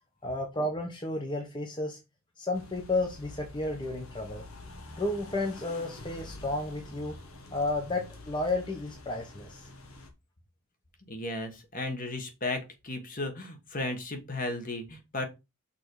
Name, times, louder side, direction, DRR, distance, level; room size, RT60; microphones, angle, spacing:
voice 1, 0.2-2.0 2.4-4.4 5.0-7.2 7.5-9.7, left 2 dB, 20° left, 2 dB, 1.0 m, -32 dB
sound 1, 2.5-10.1, left 2 dB, 80° left, 1.6 m, -47 dB
voice 2, 11.1-15.3, left 2 dB, 40° left, 5 dB, 1.6 m, -35 dB
6.1 x 4.5 x 4.8 m, 0.24 s
head